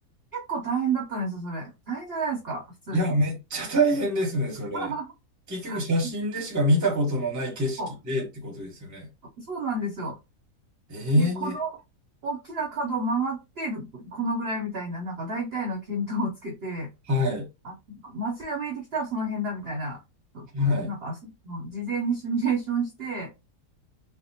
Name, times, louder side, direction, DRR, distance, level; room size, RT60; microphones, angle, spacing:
voice 1, 0.3-3.1 4.7-5.1 5.7-5.8 7.8-7.9 9.4-10.2 11.2-11.7 12.2-16.9 17.6-20.0 20.3-20.5 20.8-21.1 21.4-23.3, right 3 dB, 55° right, 0.7 m, -30 dB
voice 2, 2.9-4.9 5.5-7.8 8.0-9.1 10.9-11.6 17.1-17.5 20.5-20.9, equal, 15° right, 0.7 m, -25 dB
3.4 x 2.0 x 2.7 m
omnidirectional pair, 1.7 m